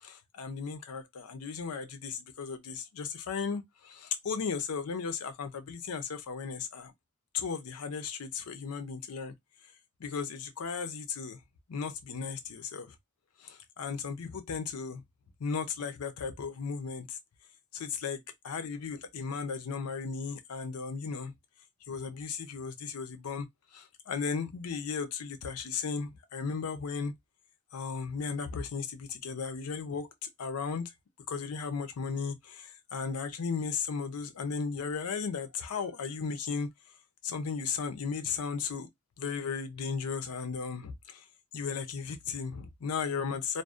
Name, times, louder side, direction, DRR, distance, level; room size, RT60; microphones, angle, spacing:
voice 1, 0.0-6.9 7.3-9.3 10.0-11.4 11.7-12.9 13.4-15.0 15.4-17.2 17.7-18.2 18.4-21.3 21.9-23.5 23.7-27.1 27.7-30.1 30.4-30.9 31.3-36.7 37.2-38.9 39.2-41.2 41.5-43.6, left 5 dB, 80° left, 0.5 m, -35 dB
2.6 x 2.0 x 2.3 m
head